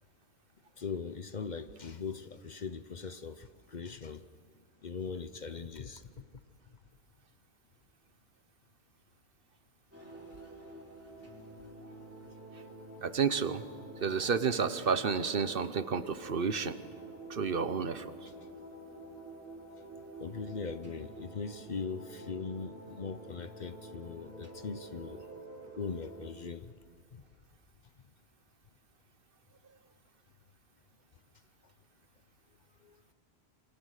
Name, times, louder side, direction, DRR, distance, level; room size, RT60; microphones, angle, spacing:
voice 1, 0.8-4.2 4.8-6.0 20.2-25.2 25.8-26.7 27.1-27.2 32.8-33.0, left 5 dB, 45° left, 11 dB, 0.8 m, -40 dB
sound 1, 9.9-26.3, right 2 dB, 15° right, 3.5 m, -49 dB
voice 2, 13.0-13.6 14.0-16.7 17.3-18.1, right 6 dB, 60° right, 12 dB, 1.1 m, -30 dB
27.0 x 25.5 x 6.6 m, 2.1 s
omnidirectional pair, 1.1 m